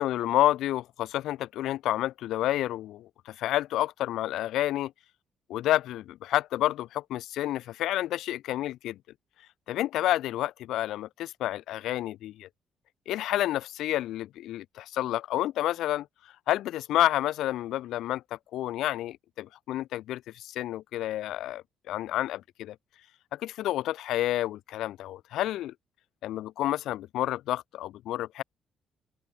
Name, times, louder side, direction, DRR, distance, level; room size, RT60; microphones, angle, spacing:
voice 1, 0.0-4.9 5.5-9.0 9.7-12.5 13.1-16.1 16.5-22.8 23.3-25.7 26.2-28.4, left 14 dB, 85° left, 0.7 m, -29 dB
cardioid pair, 90°, 0 cm